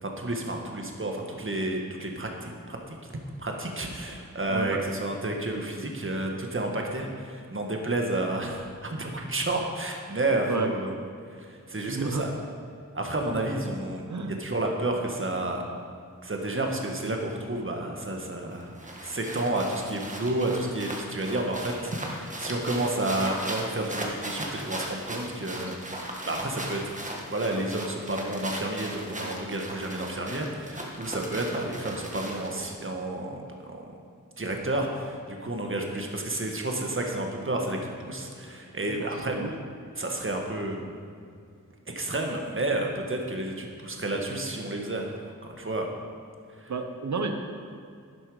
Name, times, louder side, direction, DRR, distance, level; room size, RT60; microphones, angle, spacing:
voice 1, 0.0-3.0 3.4-10.9 11.3-12.3 12.9-14.1 14.4-15.6 16.2-27.0 27.3-33.4 33.6-33.8 34.4-39.4 40.0-40.8 41.9-45.1 45.6-45.9 46.6-46.7, right 2 dB, 40° right, 1 dB, 1.7 m, -31 dB
voice 2, 4.5-4.8 10.5-10.7 11.9-12.2 14.1-14.3 38.9-39.5 46.7-47.3, right 4 dB, 60° right, 5 dB, 1.1 m, -31 dB
sound 1, 18.5-32.6, right 1 dB, 25° right, 1.7 m, -38 dB
11.0 x 11.0 x 5.1 m, 2.3 s
wide cardioid pair, 100°, 32 cm